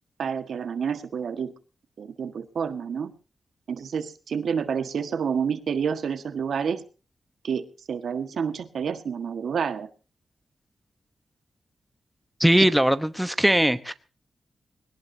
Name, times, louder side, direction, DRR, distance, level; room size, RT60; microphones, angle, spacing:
voice 1, 0.2-1.5 2.0-3.1 3.7-6.8 7.4-9.9 12.6-12.7, right 7 dB, 80° right, 10 dB, 1.6 m, -29 dB
voice 2, 12.4-13.9, equal, 5° right, 11 dB, 1.0 m, -20 dB
21.0 x 18.5 x 2.8 m, 0.36 s
wide cardioid pair, 105°, 0 cm